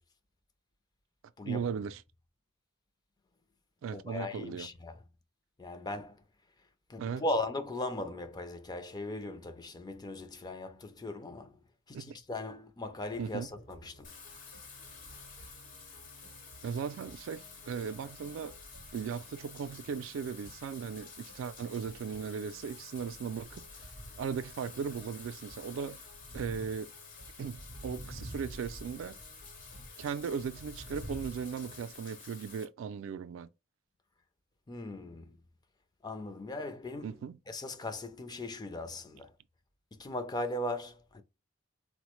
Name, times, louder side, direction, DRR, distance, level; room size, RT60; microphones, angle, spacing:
voice 1, 1.4-2.0 3.8-4.7 7.0-7.3 11.9-12.2 13.2-13.5 16.6-18.6 18.9-26.0 26.3-26.9 27.4-29.2 30.0-33.5 37.0-37.4, right 6 dB, 75° right, 0.3 m, -37 dB
voice 2, 3.9-4.9 5.6-6.2 6.9-11.6 11.9-14.1 34.7-35.4 36.0-37.2 37.5-39.3 39.9-41.2, left 2 dB, 20° left, 0.4 m, -38 dB
sound 1, 13.1-31.8, right 1 dB, 85° left, 1.0 m, -58 dB
Wind / Rain, 14.0-32.7, left 2 dB, 45° left, 0.8 m, -49 dB
3.9 x 2.1 x 2.9 m
head